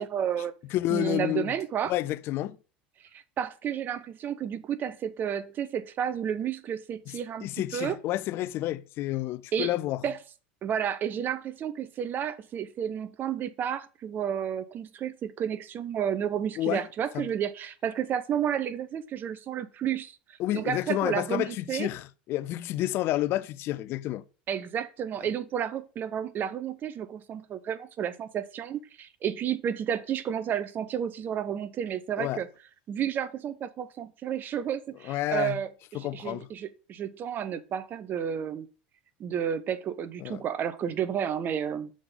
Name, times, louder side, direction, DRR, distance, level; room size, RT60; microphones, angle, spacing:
voice 1, 0.0-0.5 0.9-1.9 3.1-8.0 9.5-9.7 10.0-10.2 10.6-21.9 24.5-32.5 32.9-38.7 39.2-41.9, right 9 dB, 40° right, 0.7 m, -31 dB
voice 2, 0.7-1.5 1.8-2.6 7.1-7.2 7.4-10.0 16.6-16.9 17.1-17.2 20.4-24.2 32.2-32.4 35.0-35.6 35.9-36.5 40.2-40.4, left 15 dB, 50° left, 0.5 m, -30 dB
6.2 x 3.9 x 5.1 m
hypercardioid pair, 90°, 5 cm